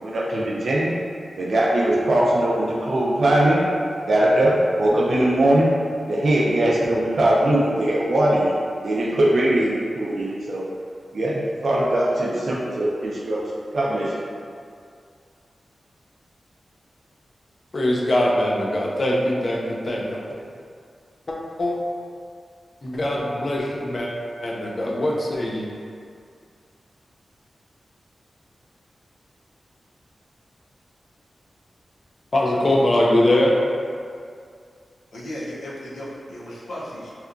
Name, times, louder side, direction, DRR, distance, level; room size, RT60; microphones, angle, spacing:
voice 1, 0.0-0.9 1.4-3.6 4.1-5.7 6.1-8.5 8.8-10.6 11.1-13.4 13.7-14.2, right 1 dB, 60° right, -5 dB, 0.3 m, -20 dB
voice 2, 17.7-20.2 21.3-21.8 22.8-24.1 24.4-25.7 32.3-33.6, left 1 dB, 40° left, -3 dB, 0.4 m, -22 dB
voice 3, 35.1-37.1, equal, 85° left, -6 dB, 0.6 m, -35 dB
2.8 x 2.3 x 2.4 m, 2.3 s
wide cardioid pair, 165°, 0 cm